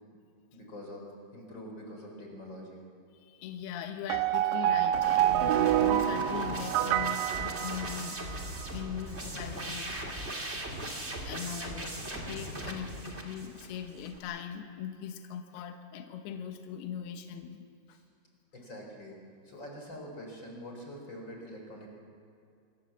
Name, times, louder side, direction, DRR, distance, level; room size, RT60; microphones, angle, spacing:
voice 1, 0.5-1.0 1.3-2.8 17.9-18.0 18.5-19.2 19.4-21.9, equal, 25° left, 1 dB, 4.5 m, -45 dB
voice 2, 3.1-8.3 8.7-10.0 11.0-18.0, left 8 dB, 70° left, 5 dB, 3.1 m, -40 dB
sound 1, 4.1-8.4, right 12 dB, 80° right, 2.0 m, -27 dB
sound 2, 4.9-14.2, right 1 dB, 20° right, 1.9 m, -39 dB
26.5 x 17.5 x 7.4 m, 2.5 s
omnidirectional pair, 4.9 m